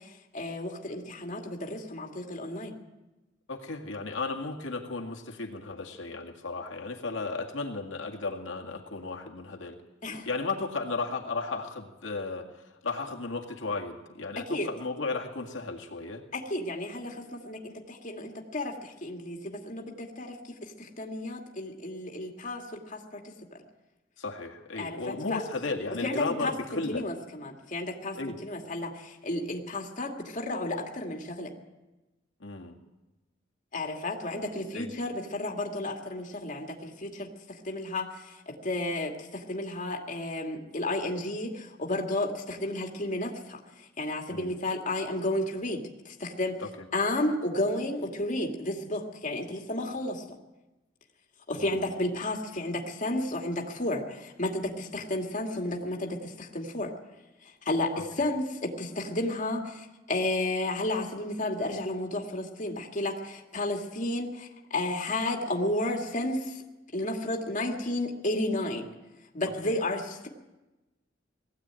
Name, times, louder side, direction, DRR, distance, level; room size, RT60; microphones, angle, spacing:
voice 1, 0.0-2.7 10.0-10.3 14.5-14.7 16.3-20.4 20.6-23.2 24.8-25.4 26.0-31.5 33.7-43.6 44.0-46.6 46.9-50.2 51.5-56.9 57.6-66.6 66.9-68.9 69.3-70.3, left 1 dB, 40° left, 1 dB, 2.2 m, -32 dB
voice 2, 3.5-9.8 10.3-16.2 24.2-27.0 28.2-28.4 32.4-32.8 34.7-34.9 44.3-44.6 46.6-46.7 51.6-51.8 57.9-58.2 69.6-69.7, left 3 dB, 75° left, 1 dB, 2.0 m, -34 dB
20.0 x 14.5 x 9.0 m, 1.1 s
head